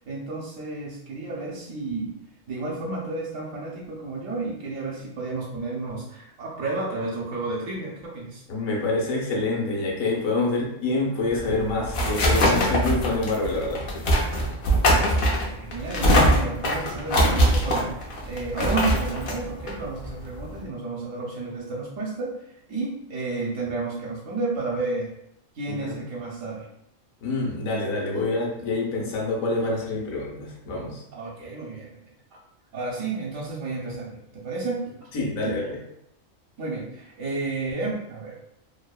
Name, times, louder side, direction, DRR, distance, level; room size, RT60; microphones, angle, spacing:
voice 1, 0.0-2.1 2.5-8.4 14.9-22.4 22.7-25.1 25.6-26.7 27.7-27.8 28.2-28.3 31.1-31.9 32.7-35.1 35.4-35.6 36.6-38.4, right 3 dB, 75° right, -4 dB, 0.9 m, -32 dB
voice 2, 8.5-13.8 25.7-26.0 27.2-31.0 35.1-35.8, left 2 dB, 85° left, -2 dB, 1.1 m, -26 dB
sound 1, 11.3-20.6, equal, 65° left, 0.5 m, -23 dB
2.8 x 2.0 x 2.2 m, 0.79 s
omnidirectional pair, 1.4 m